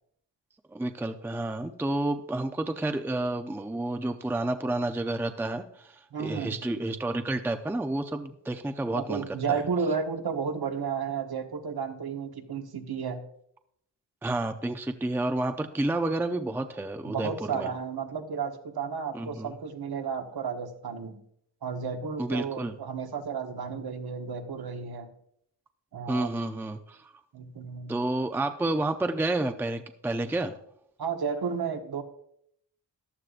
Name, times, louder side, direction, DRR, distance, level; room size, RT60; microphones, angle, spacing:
voice 1, 0.7-9.6 14.2-17.7 19.1-19.5 22.2-22.8 26.1-27.1 27.9-30.6, right 2 dB, 5° right, 7 dB, 0.5 m, -30 dB
voice 2, 6.1-6.6 8.9-13.2 17.1-21.2 21.6-25.1 25.9-26.3 27.3-27.9 31.0-32.0, right 6 dB, 60° right, 5 dB, 1.3 m, -32 dB
14.5 x 11.0 x 2.5 m, 0.70 s
wide cardioid pair, 100°, 42 cm